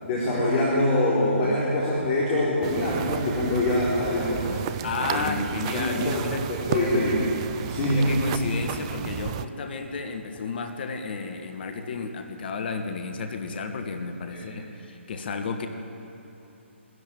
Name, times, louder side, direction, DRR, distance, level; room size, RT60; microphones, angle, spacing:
voice 1, 0.0-4.6 5.1-5.3 5.7-7.2 7.7-8.0 14.3-14.5, left 1 dB, 30° left, -6 dB, 4.3 m, -24 dB
sound 1, 2.6-9.5, right 10 dB, 30° right, 0.6 m, -33 dB
voice 2, 4.8-6.9 7.9-15.7, left 4 dB, 50° left, 6 dB, 1.6 m, -33 dB
22.0 x 13.5 x 9.1 m, 2.9 s
figure-of-eight pair, 140°, 7 cm